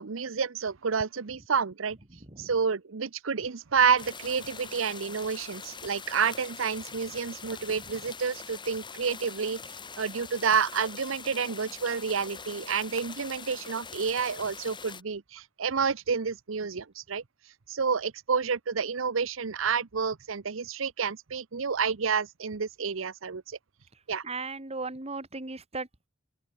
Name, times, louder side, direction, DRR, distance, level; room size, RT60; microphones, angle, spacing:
voice 1, 0.0-2.0 2.4-17.2 17.7-23.6 24.1-24.2, right 6 dB, 85° right, 0.8 m, -29 dB
sound 1, 4.0-15.0, left 5 dB, 25° left, 2.1 m, -43 dB
voice 2, 24.2-26.1, right 3 dB, 30° right, 2.2 m, -37 dB
open air
head